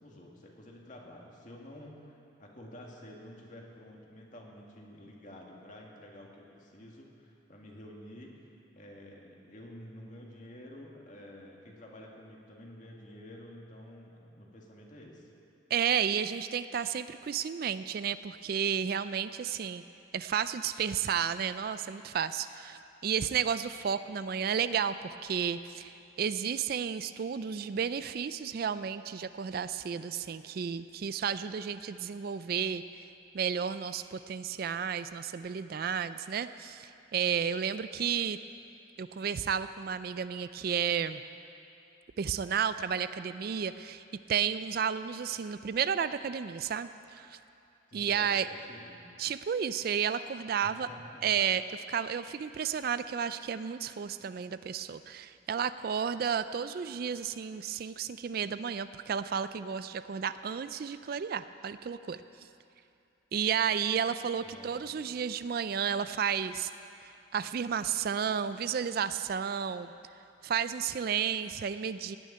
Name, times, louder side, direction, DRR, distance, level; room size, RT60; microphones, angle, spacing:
voice 1, 0.0-8.4 8.7-15.3 47.9-49.1 50.6-51.2 64.4-65.1, left 1 dB, 40° left, -1 dB, 2.0 m, -50 dB
voice 2, 15.7-19.8 20.1-33.0 33.3-38.4 39.0-41.2 42.2-47.4 47.9-48.5 49.2-50.9 51.2-62.2 63.3-66.7 67.3-69.9 70.4-72.2, right 7 dB, 50° right, 13 dB, 0.3 m, -32 dB
17.0 x 6.5 x 9.6 m, 2.7 s
head